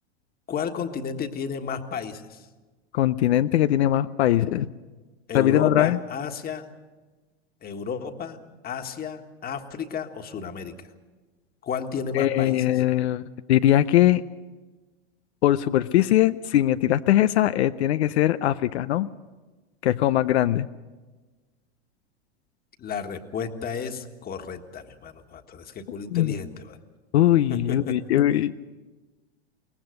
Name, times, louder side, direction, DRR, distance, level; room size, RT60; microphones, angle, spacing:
voice 1, 0.5-2.5 5.3-6.7 7.6-8.4 8.6-10.7 11.6-12.6 22.8-26.8 27.5-28.0, left 6 dB, 30° left, 6 dB, 1.6 m, -32 dB
voice 2, 2.9-4.7 5.3-6.0 12.1-14.2 15.4-19.1 19.8-20.7 26.1-26.3 27.1-28.5, left 13 dB, 85° left, 12 dB, 0.6 m, -21 dB
22.5 x 18.5 x 6.5 m, 1.3 s
hypercardioid pair, 115°, 32 cm